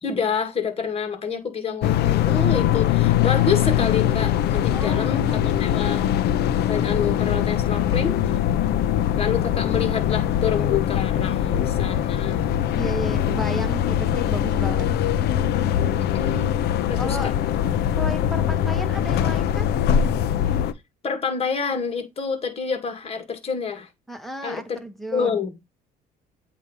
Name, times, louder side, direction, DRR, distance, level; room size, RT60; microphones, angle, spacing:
voice 1, 0.0-6.1 6.7-8.4 9.2-12.5 16.0-16.6 16.9-17.3 21.0-23.9 24.4-24.8 25.1-25.5, left 6 dB, 35° left, 1.9 m, -28 dB
sound 1, 1.8-20.7, left 10 dB, 75° left, 0.6 m, -22 dB
voice 2, 4.7-5.4 12.7-14.9 17.0-17.3 17.9-19.7 24.1-25.4, equal, ahead, 1.4 m, -33 dB
8.2 x 3.0 x 4.8 m
cardioid pair, 110°, 17 cm